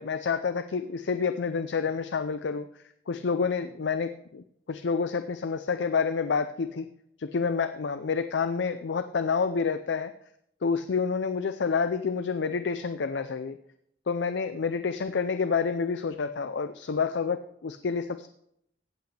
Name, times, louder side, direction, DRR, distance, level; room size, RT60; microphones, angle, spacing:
voice 1, 0.0-2.7 3.1-6.9 7.2-10.1 10.6-13.6 14.1-18.3, left 5 dB, 85° left, 11 dB, 0.5 m, -28 dB
16.0 x 8.2 x 3.3 m, 0.73 s
head